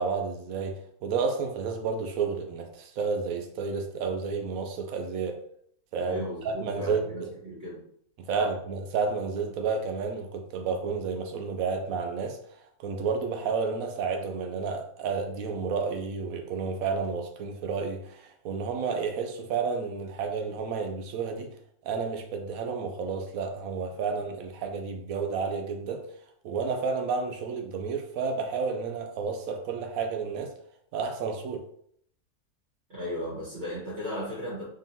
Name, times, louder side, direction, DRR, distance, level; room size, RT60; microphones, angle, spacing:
voice 1, 0.0-5.4 5.9-7.3 8.2-21.5 21.8-26.1 26.4-30.5 30.9-31.7, right 5 dB, 70° right, 5 dB, 1.0 m, -31 dB
voice 2, 6.0-7.8 8.3-8.5 32.9-34.6, equal, 45° right, -7 dB, 1.9 m, -36 dB
3.8 x 3.6 x 2.7 m, 0.66 s
omnidirectional pair, 1.6 m